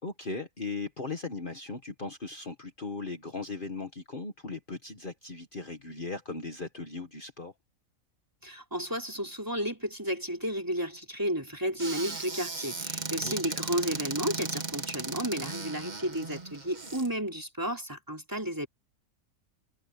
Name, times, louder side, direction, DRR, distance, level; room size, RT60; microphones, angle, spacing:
voice 1, 0.0-7.5 13.2-13.6, left 3 dB, 40° left, 1.8 m, -38 dB
voice 2, 8.4-18.7, equal, 15° right, 3.9 m, -32 dB
Squeak / Cupboard open or close, 11.8-17.1, right 3 dB, 30° right, 1.7 m, -36 dB
omnidirectional pair, 1.4 m